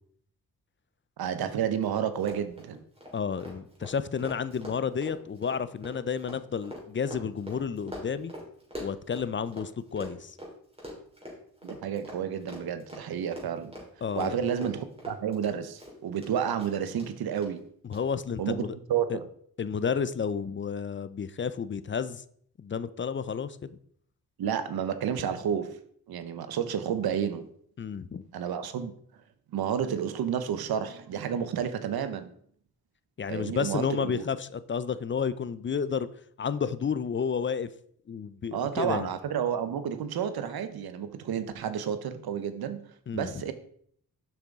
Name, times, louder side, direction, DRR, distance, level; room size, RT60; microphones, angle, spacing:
voice 1, 1.2-2.8 11.6-13.8 14.2-17.6 18.4-19.3 24.4-25.8 26.1-27.5 28.3-28.9 29.5-32.3 33.3-34.2 38.5-42.9 43.1-43.5, right 8 dB, 85° right, 11 dB, 0.8 m, -31 dB
Run, 1.4-1.5 1.7-1.9 2.2-9.7 10.0-16.3 16.6-17.1 17.4-17.5 17.9-18.0, equal, 15° right, 2.9 m, -43 dB
voice 2, 3.1-8.3 8.8-10.4 14.0-14.4 17.9-18.7 19.1-19.2 19.6-22.2 22.6-23.8 27.8-28.3 33.2-36.1 36.4-37.7 38.1-39.1 43.1-43.4, left 6 dB, 35° left, 15 dB, 0.5 m, -31 dB
7.0 x 5.9 x 3.6 m, 0.63 s
cardioid pair, 70°, 36 cm